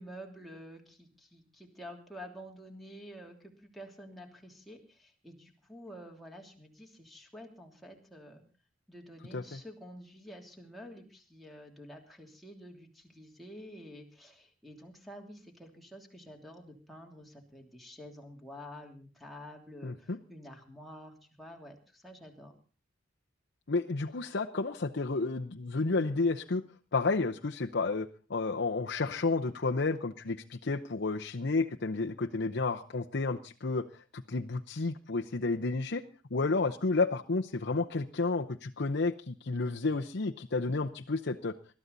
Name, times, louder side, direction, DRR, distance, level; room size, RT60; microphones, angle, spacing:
voice 1, 0.0-8.4 8.9-22.5, equal, ahead, 0 dB, 3.0 m, -49 dB
voice 2, 19.8-20.2 23.7-26.6 26.9-36.0 36.3-41.5, left 3 dB, 65° left, 3 dB, 0.8 m, -31 dB
21.0 x 13.0 x 4.0 m, 0.35 s
head